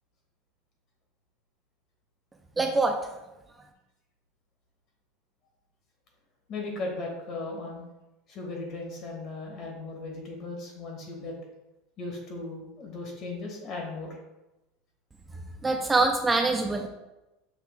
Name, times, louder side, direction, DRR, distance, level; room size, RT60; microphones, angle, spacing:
voice 1, 2.6-2.9 15.6-16.9, right 3 dB, 15° right, 3 dB, 0.3 m, -24 dB
voice 2, 6.5-7.8 8.3-11.3 12.0-14.2, left 2 dB, 45° left, 0 dB, 1.3 m, -37 dB
5.7 x 2.4 x 3.5 m, 0.98 s
supercardioid pair, 135°, 0 cm